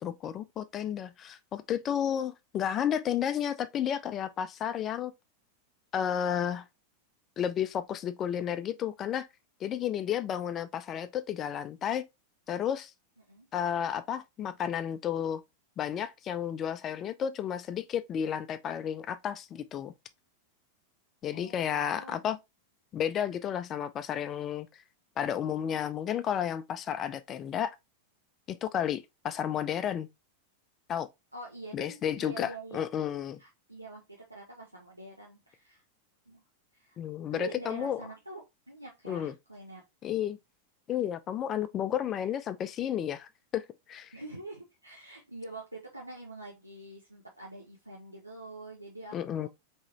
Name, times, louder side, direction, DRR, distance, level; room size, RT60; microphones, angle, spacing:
voice 1, 0.0-5.1 5.9-6.6 7.4-9.3 9.6-12.0 12.5-12.9 13.5-15.4 15.8-19.9 21.2-22.4 22.9-24.7 25.2-27.8 28.5-30.1 30.9-31.1 31.7-33.4 37.0-38.0 39.1-39.3 40.0-40.4 40.9-44.1 49.1-49.5, left 9 dB, 30° left, 0.4 m, -32 dB
voice 2, 21.3-22.2 31.3-32.8 33.4-35.8 36.3-36.4 36.7-37.0 37.3-39.8 44.1-49.5, right 2 dB, 85° right, 0.8 m, -45 dB
3.8 x 3.0 x 2.9 m
figure-of-eight pair, 90°, 0 cm